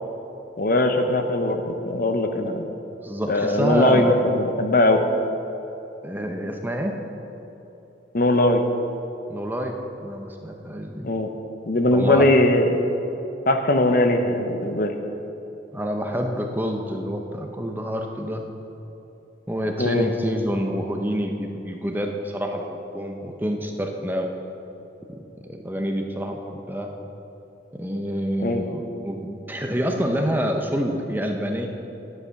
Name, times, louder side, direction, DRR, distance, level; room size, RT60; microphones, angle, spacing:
voice 1, 0.6-2.7 3.3-5.0 8.1-8.6 11.0-11.3 11.7-12.8 13.5-14.9 19.8-20.0 28.4-28.6, left 1 dB, 45° left, 5 dB, 0.8 m, -20 dB
voice 2, 3.0-4.2 6.0-7.0 9.3-11.1 11.9-12.3 15.7-18.4 19.5-22.7 22.9-24.3 25.2-26.9 27.7-31.7, equal, 10° right, 3 dB, 0.7 m, -27 dB
10.5 x 9.8 x 5.8 m, 3.0 s
head